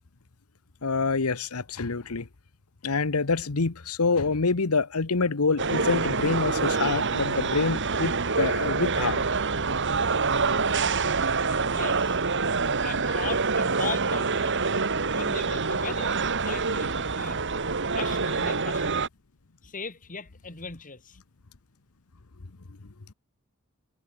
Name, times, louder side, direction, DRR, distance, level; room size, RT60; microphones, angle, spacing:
voice 1, 0.8-2.3 2.8-9.2 11.5-11.6, left 4 dB, 85° left, 1.1 m, -26 dB
sound 1, 5.6-19.1, right 4 dB, 55° right, 2.2 m, -26 dB
voice 2, 11.7-12.2 12.8-14.7 15.1-17.4 17.9-19.0 19.6-21.2, left 5 dB, 40° left, 3.0 m, -38 dB
head